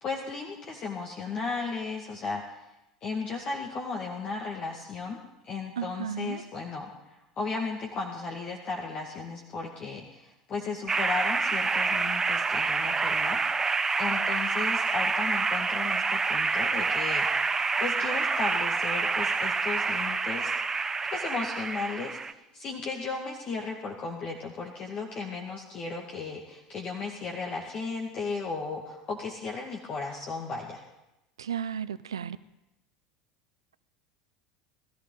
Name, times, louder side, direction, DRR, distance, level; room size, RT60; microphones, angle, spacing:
voice 1, 0.0-2.7 3.0-5.2 5.4-17.3 17.8-30.8, left 4 dB, 40° left, 2.1 m, -35 dB
voice 2, 5.8-6.4 31.4-32.4, right 8 dB, 85° right, 0.5 m, -34 dB
sound 1, 10.9-22.3, right 4 dB, 20° right, 0.7 m, -27 dB
20.0 x 13.5 x 3.9 m
hypercardioid pair, 75°, 3 cm